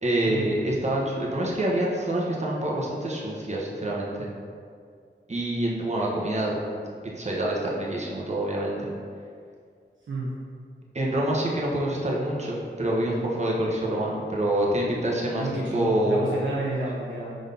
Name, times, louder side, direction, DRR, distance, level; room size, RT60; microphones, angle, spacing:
voice 1, 0.0-4.3 5.3-6.6 7.0-8.9 10.9-16.2, right 1 dB, 35° right, -4 dB, 1.2 m, -26 dB
voice 2, 15.4-17.4, right 2 dB, 80° right, -7 dB, 1.2 m, -30 dB
5.0 x 4.1 x 5.4 m, 2.2 s
wide cardioid pair, 65°, 19 cm